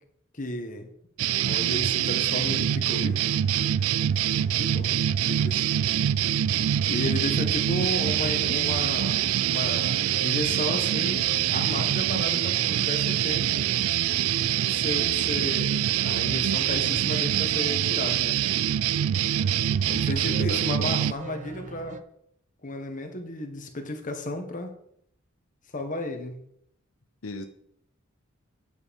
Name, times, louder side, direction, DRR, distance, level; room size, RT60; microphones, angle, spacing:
voice 1, 0.3-0.9 1.5-3.3 4.3-4.9 5.3-5.7 6.8-13.6 14.7-18.4 19.9-22.0 22.6-24.7 25.7-26.4, left 1 dB, 40° left, 5 dB, 1.5 m, -33 dB
sound 1, 1.2-21.1, right 11 dB, 90° right, 0.4 m, -25 dB
sound 2, 3.1-22.0, right 2 dB, 35° right, 0.6 m, -43 dB
voice 2, 20.2-21.1 27.2-27.5, left 3 dB, 80° left, 8 dB, 0.8 m, -37 dB
10.0 x 6.7 x 5.4 m, 0.72 s
head